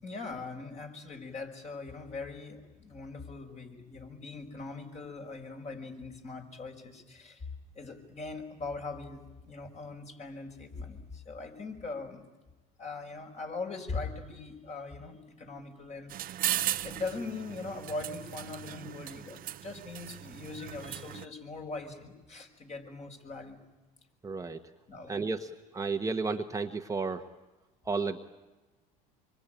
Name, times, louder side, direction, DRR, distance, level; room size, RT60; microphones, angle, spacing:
voice 1, 0.0-12.2 12.8-16.4 16.8-23.6 24.9-25.2, left 3 dB, 35° left, 3 dB, 5.5 m, -41 dB
sound 1, 16.1-21.3, right 12 dB, 45° right, 0.8 m, -37 dB
voice 2, 24.2-24.6 25.1-27.2 27.8-28.2, right 4 dB, 15° right, 5 dB, 1.3 m, -32 dB
26.0 x 24.0 x 9.1 m, 1.1 s
supercardioid pair, 95°, 20 cm